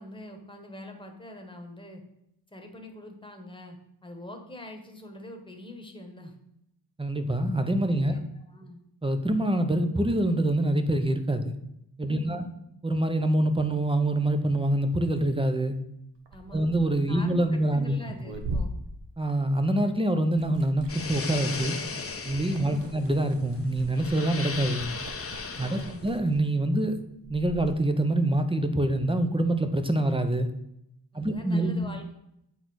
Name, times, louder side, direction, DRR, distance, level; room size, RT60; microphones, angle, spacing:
voice 1, 0.0-2.0 2.5-6.3 7.9-8.8 12.1-12.4 16.3-16.7 17.1-18.7 22.6-23.0 25.6-26.1 31.1-32.0, left 1 dB, 10° left, 3 dB, 1.3 m, -44 dB
voice 2, 7.0-8.2 9.0-11.5 12.0-12.5 12.8-15.8 16.5-17.9 19.2-21.8 22.2-24.8 25.6-27.0 27.3-30.5 31.1-31.9, right 1 dB, 15° right, 8 dB, 0.7 m, -25 dB
Liquid, 16.2-19.9 20.1-27.7, right 1 dB, 85° right, 1.1 m, -40 dB
sound 1, 20.9-26.2, left 4 dB, 35° left, 0.8 m, -37 dB
8.3 x 4.0 x 6.2 m, 0.80 s
wide cardioid pair, 140°, 42 cm